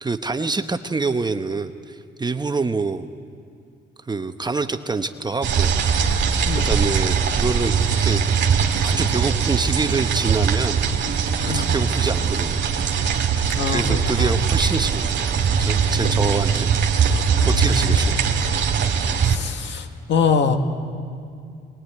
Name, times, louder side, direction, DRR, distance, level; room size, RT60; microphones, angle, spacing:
voice 1, 0.0-3.1 4.1-5.9 6.5-7.7 8.0-8.2 8.7-10.8 11.1-12.6 13.7-15.1 15.6-16.8 17.4-18.2, right 3 dB, 20° right, 9 dB, 1.0 m, -26 dB
sound 1, 5.4-19.4, right 6 dB, 60° right, 2.2 m, -21 dB
voice 2, 13.5-14.3 16.0-16.3 17.5-17.8 19.3-20.6, left 5 dB, 65° left, 6 dB, 1.9 m, -24 dB
22.5 x 20.5 x 9.5 m, 2.4 s
cardioid pair, 90°, 20 cm